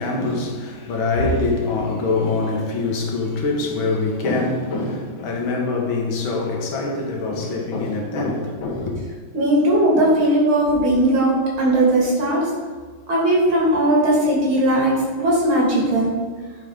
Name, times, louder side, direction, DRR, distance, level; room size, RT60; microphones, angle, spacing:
voice 1, 0.0-8.9, left 3 dB, 70° left, 1.9 m, -24 dB
voice 2, 9.3-12.5 13.1-16.1, right 1 dB, 75° right, 3.6 m, -18 dB
10.5 x 4.6 x 5.0 m
omnidirectional pair, 2.3 m